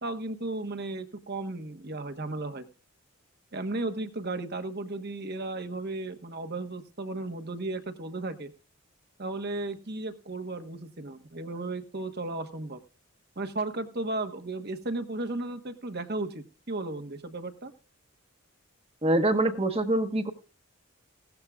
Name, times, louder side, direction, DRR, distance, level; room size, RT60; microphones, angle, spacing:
voice 1, 0.0-2.7 3.5-8.5 9.2-12.8 13.4-17.7, right 2 dB, 50° right, 8 dB, 1.3 m, -35 dB
voice 2, 19.0-20.3, right 1 dB, 25° right, 7 dB, 1.3 m, -25 dB
17.0 x 14.0 x 2.4 m, 0.35 s
head